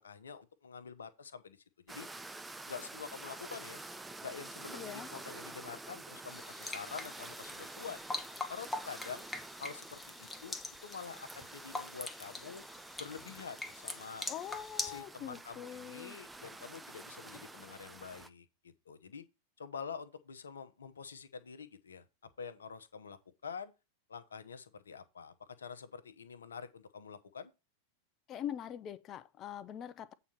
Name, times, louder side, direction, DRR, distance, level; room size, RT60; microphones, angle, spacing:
voice 1, 0.0-1.6 1.9-2.1 2.7-3.8 4.2-8.0 8.5-9.3 9.6-12.6 13.0-14.3 14.9-18.4 18.9-19.2 19.6-23.7 24.1-27.5, left 6 dB, 70° left, 1.0 m, -47 dB
sound 1, 1.9-18.3, right 2 dB, 10° right, 0.6 m, -49 dB
voice 2, 4.7-5.1 14.3-16.2 28.3-30.1, left 10 dB, 30° left, 0.7 m, -43 dB
sound 2, 6.3-15.0, left 2 dB, 10° left, 1.2 m, -43 dB
8.6 x 4.1 x 5.7 m
figure-of-eight pair, 90°, 0 cm